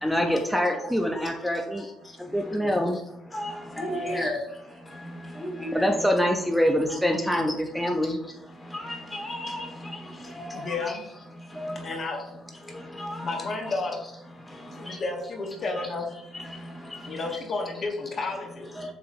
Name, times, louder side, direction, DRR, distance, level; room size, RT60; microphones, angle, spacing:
voice 1, 0.0-1.9 2.2-3.0 5.7-8.2, equal, ahead, 2 dB, 0.5 m, -25 dB
voice 2, 2.6-3.0 3.9-4.3 10.5-11.1 11.7-12.3 13.2-14.1 14.8-16.1 17.1-18.7, left 3 dB, 45° left, 2 dB, 0.9 m, -32 dB
voice 3, 3.8-4.4 5.4-5.9 7.3-7.5 8.8-9.6 10.8-10.9 11.6-11.7 13.0-13.5 18.8-18.9, left 1 dB, 20° left, 1 dB, 1.2 m, -32 dB
7.3 x 2.9 x 2.5 m, 0.80 s
cardioid pair, 95°, 0 cm